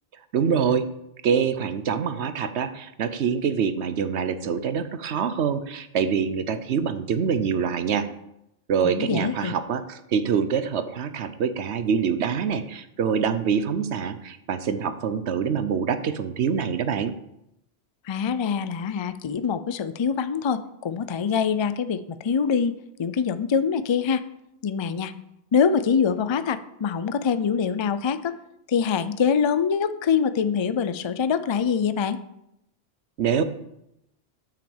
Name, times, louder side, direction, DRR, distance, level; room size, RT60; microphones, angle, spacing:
voice 1, 0.3-0.9 1.2-8.1 8.7-17.1 33.2-33.4, right 7 dB, 75° right, 12 dB, 1.0 m, -25 dB
voice 2, 8.8-9.5 18.1-22.7 23.0-24.2 24.6-25.1 25.5-28.3 28.7-32.2, left 6 dB, 40° left, 12 dB, 0.4 m, -24 dB
9.1 x 5.9 x 7.1 m, 0.82 s
omnidirectional pair, 1.2 m